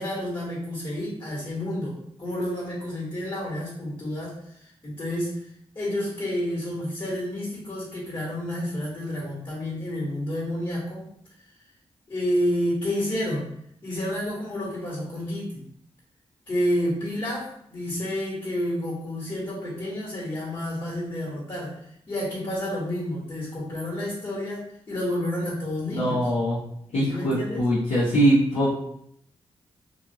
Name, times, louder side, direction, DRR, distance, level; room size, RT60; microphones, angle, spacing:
voice 1, 0.0-4.4 4.8-5.4 5.7-11.1 12.1-13.5 13.8-15.6 16.5-26.3 27.1-27.7, left 1 dB, 40° left, -5 dB, 1.5 m, -30 dB
voice 2, 25.9-26.6 26.9-28.7, right 1 dB, 85° left, -10 dB, 0.9 m, -22 dB
2.6 x 2.5 x 2.8 m, 0.70 s
cardioid pair, 60°, 11 cm